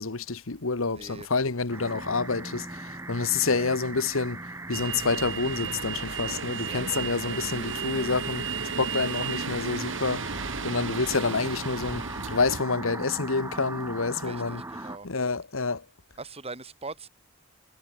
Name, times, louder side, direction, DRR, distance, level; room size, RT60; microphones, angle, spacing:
voice 1, 0.0-4.4 4.7-10.3 10.6-14.6 15.0-15.8, left 4 dB, 80° left, 1.4 m, -28 dB
voice 2, 0.9-1.3 1.7-2.0 3.5-3.7 6.6-6.8 7.9-8.0 10.2-10.5 14.2-15.1 16.2-17.1, right 3 dB, 30° right, 5.0 m, -42 dB
sound 1, 1.7-15.0, right 2 dB, 15° right, 1.2 m, -39 dB
sound 2, 4.7-12.6, right 5 dB, 65° right, 2.0 m, -34 dB
head